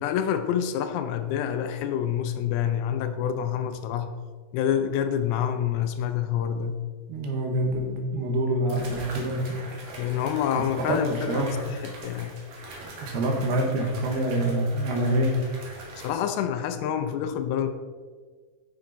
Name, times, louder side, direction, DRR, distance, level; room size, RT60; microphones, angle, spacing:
voice 1, 0.0-4.1 4.5-6.8 10.0-12.4 16.0-17.7, left 9 dB, 80° left, 9 dB, 2.5 m, -27 dB
voice 2, 7.1-9.7 10.8-11.5 13.0-15.3, right 1 dB, 80° right, 1 dB, 3.2 m, -26 dB
sound 1, 7.7-7.8 8.7-16.1, right 2 dB, 55° right, 2.0 m, -42 dB
9.3 x 6.3 x 4.0 m, 1.5 s
omnidirectional pair, 4.5 m